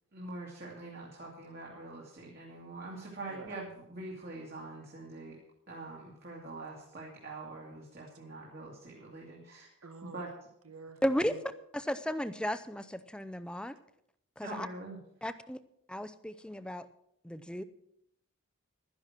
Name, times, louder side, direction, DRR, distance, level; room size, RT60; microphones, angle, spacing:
voice 1, 0.1-5.4 5.7-9.7 10.1-10.3 14.4-15.0, right 2 dB, 45° right, -2 dB, 2.3 m, -44 dB
voice 2, 3.3-3.6 9.8-10.3 10.6-11.0 11.3-11.4, right 4 dB, 90° right, 8 dB, 1.5 m, -48 dB
voice 3, 11.0-13.8 14.4-14.7 15.2-15.6 15.9-16.9 17.2-17.6, equal, 5° left, 12 dB, 0.5 m, -34 dB
12.0 x 10.5 x 6.0 m, 0.76 s
head